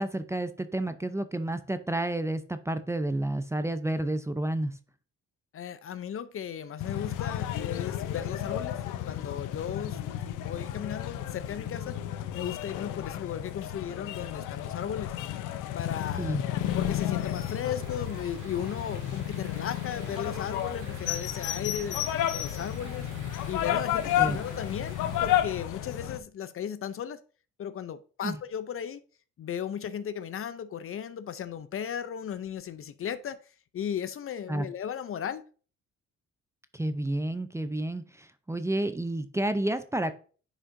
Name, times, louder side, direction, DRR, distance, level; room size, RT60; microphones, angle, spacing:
voice 1, 0.0-4.7 16.2-16.4 24.2-24.4 28.2-28.4 34.5-34.7 36.7-40.1, right 1 dB, 10° right, 0.5 m, -30 dB
voice 2, 5.5-12.0 12.3-15.1 15.7-16.4 16.7-22.0 22.3-23.1 23.5-27.2 27.6-29.0 29.4-33.4 33.7-35.4, left 8 dB, 45° left, 0.5 m, -36 dB
sound 1, 6.8-26.2, left 11 dB, 90° left, 0.7 m, -32 dB
sound 2, 16.6-25.4, right 4 dB, 80° right, 2.0 m, -47 dB
9.8 x 5.1 x 2.6 m
cardioid pair, 90°, 30 cm